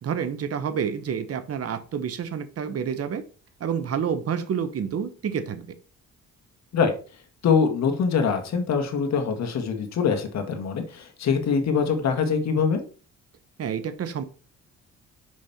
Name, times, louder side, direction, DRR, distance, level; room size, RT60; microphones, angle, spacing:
voice 1, 0.0-3.2 3.6-5.7 13.6-14.2, right 7 dB, 50° right, 1.1 m, -29 dB
voice 2, 7.4-12.8, left 6 dB, 60° left, 1.9 m, -23 dB
6.4 x 5.4 x 4.2 m
cardioid pair, 90°, 30 cm